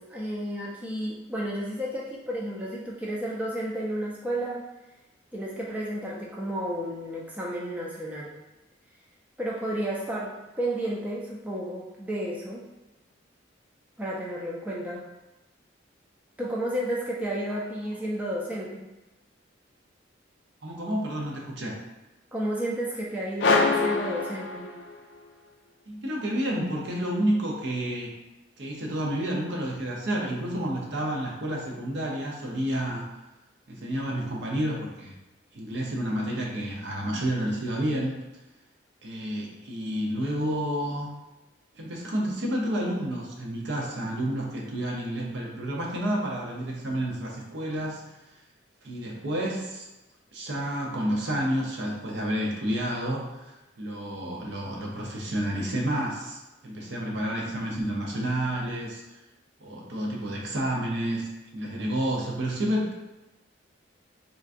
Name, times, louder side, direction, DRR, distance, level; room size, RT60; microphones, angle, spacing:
voice 1, 0.0-4.6 5.3-8.4 9.4-12.6 14.0-15.0 16.4-18.9 22.3-24.7, right 1 dB, 10° right, -5 dB, 0.4 m, -32 dB
voice 2, 20.6-21.8 25.9-28.1 28.6-33.1 33.7-35.1 35.5-38.1 39.0-41.1 41.8-48.1 48.8-49.9 50.3-59.0 59.6-62.9, right 1 dB, 65° right, -2 dB, 0.6 m, -30 dB
sound 1, 23.4-25.2, left 3 dB, 65° left, 0.3 m, -24 dB
3.7 x 2.3 x 2.5 m, 1.0 s
head